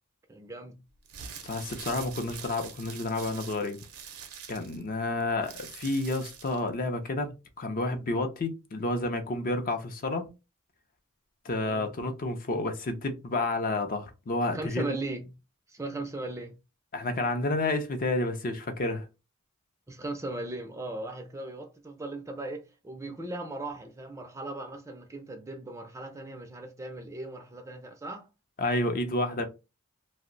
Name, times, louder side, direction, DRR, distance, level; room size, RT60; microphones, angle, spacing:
voice 1, 0.3-0.8 5.2-5.3 11.7-11.9 14.5-15.3 15.7-16.5 19.9-28.3, right 2 dB, 15° right, 0.4 m, -38 dB
Crumpling plastic sheet, 1.0-6.7, right 7 dB, 80° right, 0.6 m, -44 dB
voice 2, 1.4-3.8 4.5-7.3 7.6-10.3 11.4-15.0 16.9-19.1 28.6-29.5, left 2 dB, 40° left, 0.5 m, -30 dB
2.6 x 2.0 x 3.7 m
head